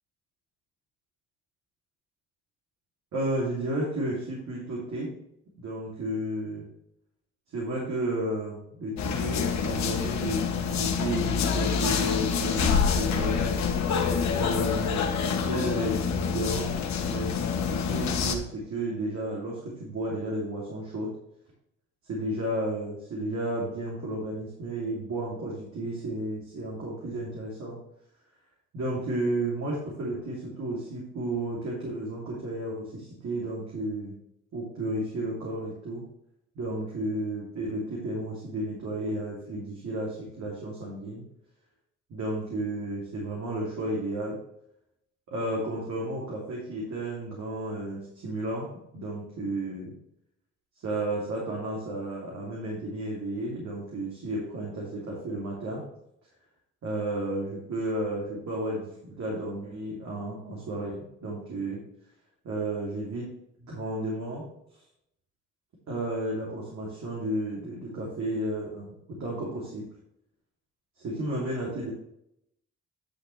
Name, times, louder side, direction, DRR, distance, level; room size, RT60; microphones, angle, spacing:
voice 1, 3.1-5.1 5.6-6.7 7.5-13.4 14.3-16.7 17.0-17.3 17.7-21.1 22.0-27.8 28.7-34.1 34.5-36.0 36.5-41.2 42.1-44.4 45.3-48.7 48.9-49.9 50.8-55.8 56.8-61.8 62.4-63.3 63.6-64.4 65.9-69.9 71.0-71.9, right 1 dB, 65° right, -4 dB, 3.0 m, -32 dB
sound 1, 9.0-18.4, left 6 dB, 65° left, 1.4 m, -27 dB
9.9 x 6.7 x 3.3 m, 0.79 s
cardioid pair, 90°, 30 cm